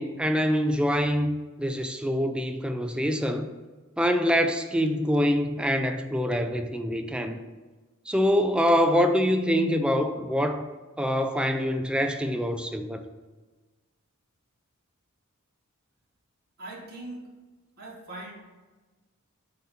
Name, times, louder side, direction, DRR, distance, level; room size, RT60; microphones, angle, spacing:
voice 1, 0.0-3.5 4.0-7.4 8.1-10.6 11.0-13.0, equal, 5° right, 7 dB, 0.4 m, -25 dB
voice 2, 16.6-17.2 17.8-18.3, right 2 dB, 45° right, -5 dB, 1.9 m, -40 dB
7.4 x 2.8 x 5.6 m, 1.3 s
head